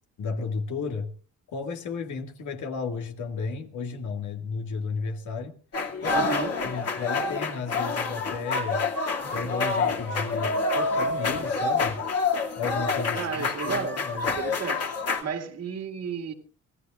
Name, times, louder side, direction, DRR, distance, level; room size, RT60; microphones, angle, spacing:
voice 1, 0.2-1.1 1.5-5.5 6.0-6.3 6.6-8.8 9.3-12.0 12.6-14.3, left 5 dB, 75° left, 2.0 m, -33 dB
sound 1, 5.7-15.2, left 3 dB, 55° left, 2.4 m, -27 dB
voice 2, 6.1-6.6 13.1-15.0 15.2-16.3, right 6 dB, 55° right, 2.2 m, -33 dB
26.0 x 16.0 x 2.5 m
cardioid pair, 90°, 30 cm